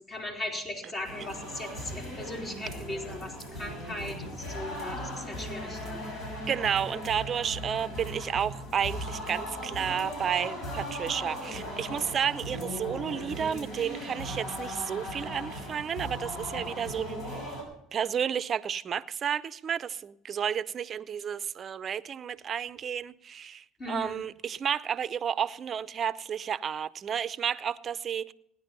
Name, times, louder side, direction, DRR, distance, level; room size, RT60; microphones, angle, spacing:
voice 1, 0.1-6.0 23.8-24.2, left 1 dB, 40° left, 4.3 m, -38 dB
sound 1, 1.0-17.6, equal, 60° left, 5.9 m, -38 dB
voice 2, 6.5-17.5 17.9-28.3, right 8 dB, 40° right, 0.6 m, -31 dB
16.5 x 10.5 x 5.4 m
supercardioid pair, 80°, 0 cm